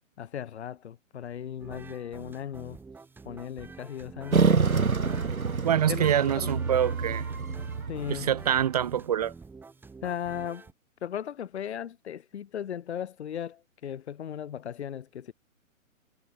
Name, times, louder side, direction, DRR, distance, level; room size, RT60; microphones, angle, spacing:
voice 1, 0.2-2.8 3.3-4.5 5.9-6.5 7.9-8.3 10.0-10.7 11.0-15.3, left 9 dB, 50° left, 1.9 m, -37 dB
sound 1, 1.6-10.7, right 4 dB, 5° right, 1.5 m, -48 dB
sound 2, 4.3-8.9, right 5 dB, 85° right, 1.1 m, -27 dB
voice 2, 5.6-7.2 8.1-9.3, right 10 dB, 30° right, 0.6 m, -25 dB
figure-of-eight pair, 125°, 42 cm